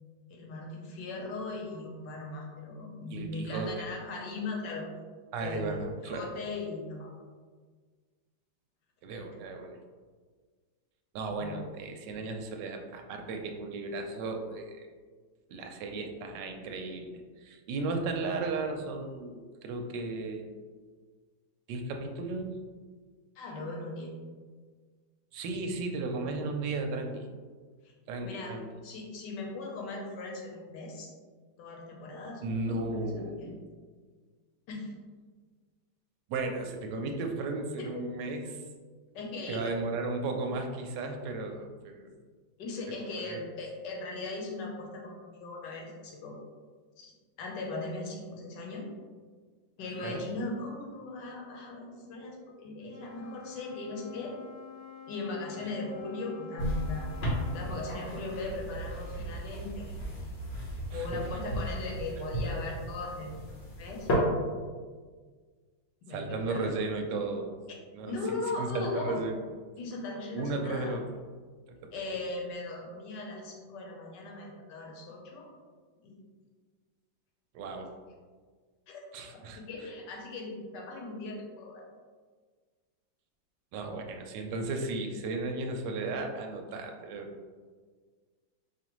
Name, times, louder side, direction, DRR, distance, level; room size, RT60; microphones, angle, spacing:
voice 1, 0.3-4.9 5.4-7.1 11.4-11.7 23.3-24.2 27.8-27.9 28.2-28.6 28.8-31.1 31.6-32.9 33.2-33.5 34.7-34.9 37.8-38.0 39.1-39.8 42.6-46.3 47.0-47.1 47.4-48.8 49.8-54.4 55.1-57.1 57.4-60.0 60.9-63.3 63.8-64.2 66.1-66.7 68.1-69.2 69.8-71.0 71.9-75.5 76.0-76.2 78.9-79.0 79.7-81.8, left 2 dB, 70° left, 0 dB, 1.3 m, -38 dB
voice 2, 3.1-3.9 5.3-6.3 9.0-9.8 11.1-14.9 15.5-17.1 17.4-20.4 21.7-22.5 25.3-27.3 28.1-28.7 32.4-33.6 36.3-38.6 39.5-42.1 43.1-43.4 50.0-50.3 60.9-61.2 66.1-67.6 67.9-68.2 68.6-69.3 70.3-71.2 71.7-71.9 77.5-77.9 79.1-79.6 83.7-87.5, right 3 dB, 75° right, 4 dB, 1.1 m, -35 dB
Wind instrument woodwind instrument, 52.8-57.8, left 7 dB, 15° right, 0.6 m, -48 dB
sound 1, 56.6-64.1, equal, 50° left, 0.8 m, -35 dB
5.0 x 2.4 x 3.0 m, 1.6 s
omnidirectional pair, 2.0 m